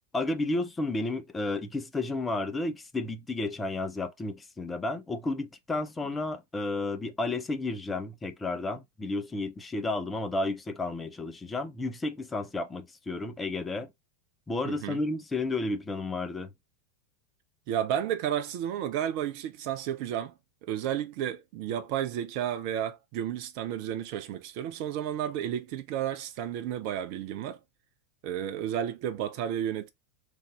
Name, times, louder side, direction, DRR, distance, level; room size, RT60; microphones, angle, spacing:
voice 1, 0.1-13.9 14.5-16.5, left 2 dB, 15° left, 0.6 m, -32 dB
voice 2, 14.6-15.0 17.7-20.3 20.6-27.6 28.2-29.9, right 10 dB, 45° right, 0.5 m, -32 dB
3.5 x 2.6 x 3.2 m
figure-of-eight pair, 90°, 0 cm